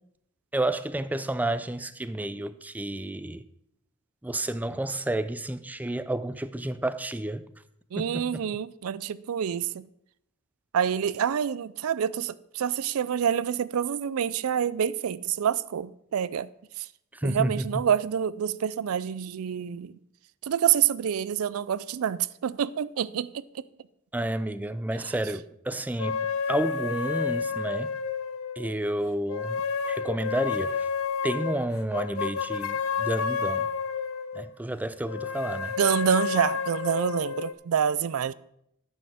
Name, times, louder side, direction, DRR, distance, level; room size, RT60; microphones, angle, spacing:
voice 1, 0.5-3.4 4.2-7.4 8.0-8.4 17.1-17.9 24.1-28.0 28.6-29.6 29.9-30.9 31.2-33.7 34.3-35.8, right 1 dB, 10° right, 0.4 m, -30 dB
voice 2, 7.9-9.8 10.7-16.5 16.8-16.9 17.2-20.0 20.4-23.6 35.8-38.3, right 8 dB, 80° right, 0.4 m, -27 dB
sound 1, 26.0-28.7 29.3-34.5 35.0-37.5, left 6 dB, 75° left, 0.6 m, -30 dB
9.1 x 6.4 x 6.6 m
head